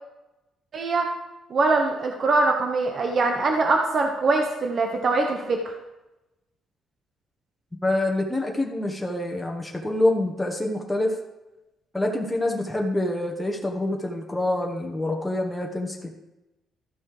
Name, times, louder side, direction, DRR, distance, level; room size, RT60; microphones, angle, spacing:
voice 1, 0.7-1.1 1.5-5.6, right 3 dB, 50° right, 3 dB, 1.2 m, -23 dB
voice 2, 7.8-11.1 11.9-16.1, left 1 dB, 10° left, 0 dB, 1.4 m, -26 dB
13.0 x 5.4 x 4.9 m, 0.96 s
cardioid pair, 90°, 0 cm